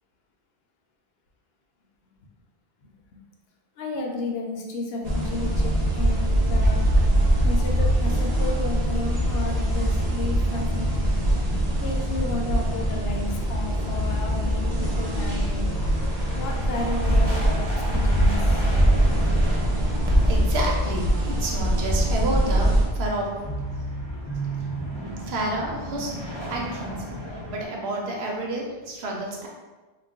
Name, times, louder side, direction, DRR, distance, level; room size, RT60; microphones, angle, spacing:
voice 1, 3.8-6.8 7.4-11.1 11.8-15.7 16.3-18.7, left 2 dB, 75° left, 0 dB, 0.8 m, -33 dB
sound 1, 5.0-25.0, left 1 dB, 55° left, 0.4 m, -33 dB
sound 2, 5.0-22.9, right 1 dB, 45° right, 0.6 m, -23 dB
sound 3, 12.5-27.6, equal, 30° right, 1.0 m, -37 dB
voice 2, 20.2-23.3 25.2-27.1 27.5-29.5, right 2 dB, 90° right, -1 dB, 0.9 m, -30 dB
2.4 x 2.2 x 3.4 m, 1.2 s
omnidirectional pair, 1.0 m